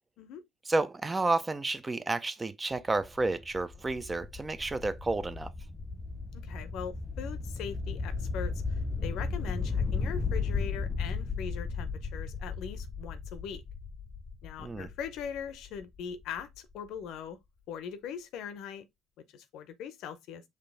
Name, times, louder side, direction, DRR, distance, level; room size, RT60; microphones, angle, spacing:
voice 1, 0.7-5.5 14.6-14.9, right 2 dB, 20° right, 0.6 m, -31 dB
sound 1, 2.8-16.4, left 4 dB, 20° left, 0.6 m, -35 dB
voice 2, 6.3-8.5 9.0-13.6 14.4-17.4 17.7-18.8 19.3-20.4, left 7 dB, 65° left, 0.7 m, -41 dB
5.1 x 2.9 x 3.4 m
hypercardioid pair, 65°, 0 cm